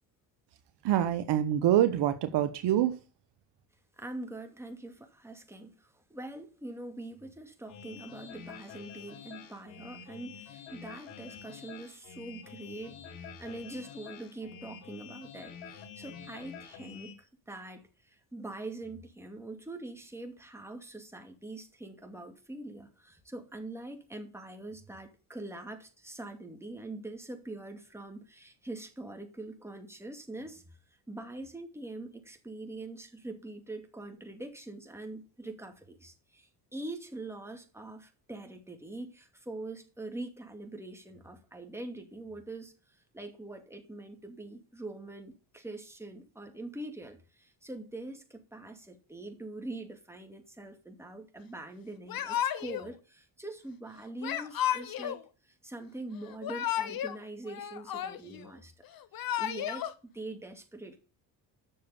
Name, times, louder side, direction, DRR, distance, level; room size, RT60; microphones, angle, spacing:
voice 1, 0.8-2.9, right 11 dB, 65° right, 1.1 m, -25 dB
voice 2, 4.0-30.8 31.1-58.7 59.4-61.0, right 2 dB, 5° right, 2.4 m, -43 dB
sound 1, 7.7-17.1, left 7 dB, 85° left, 1.8 m, -48 dB
Yell / Crying sobbing, 52.1-52.9 54.2-55.2 56.3-57.2 57.5-58.4 59.0-59.9, left 11 dB, 55° left, 1.1 m, -33 dB
7.8 x 6.6 x 6.9 m
supercardioid pair, 75°, 43 cm